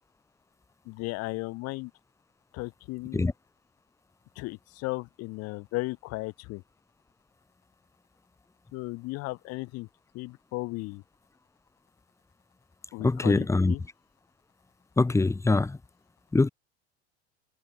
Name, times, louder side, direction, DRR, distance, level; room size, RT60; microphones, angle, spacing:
voice 1, 0.9-1.9 2.5-3.3 4.4-6.6 8.7-9.9 10.1-11.0 12.9-13.8, left 22 dB, 45° left, 1.8 m, -35 dB
voice 2, 13.0-13.7 15.0-15.8 16.3-16.5, left 3 dB, 10° left, 1.4 m, -23 dB
figure-of-eight pair, 85°, 35 cm